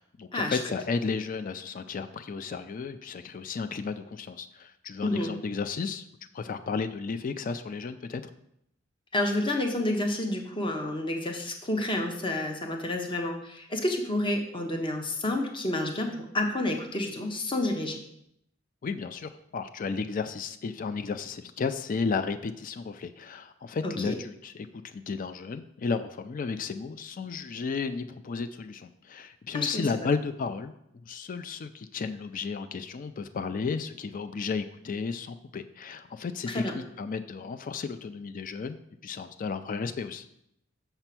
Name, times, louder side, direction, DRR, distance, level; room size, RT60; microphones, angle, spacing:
voice 1, 0.0-6.0 6.3-8.2 18.8-40.3, left 5 dB, 45° left, 11 dB, 0.4 m, -33 dB
voice 2, 5.0-5.3 9.1-18.0 23.8-24.1 29.5-29.9 36.5-36.7, left 1 dB, 25° left, 3 dB, 0.8 m, -29 dB
6.8 x 4.4 x 5.9 m, 0.76 s
head